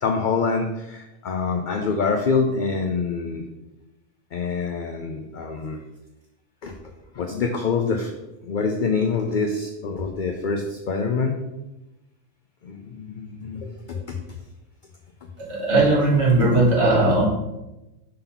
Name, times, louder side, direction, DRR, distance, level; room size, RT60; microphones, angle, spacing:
voice 1, 0.0-3.4 4.3-5.8 6.6-6.7 7.2-8.1 8.4-11.4 12.6-14.2, left 4 dB, 50° left, 3 dB, 0.6 m, -25 dB
voice 2, 15.4-17.3, right 2 dB, 60° right, -6 dB, 2.3 m, -18 dB
5.3 x 4.0 x 5.6 m, 0.96 s
omnidirectional pair, 1.3 m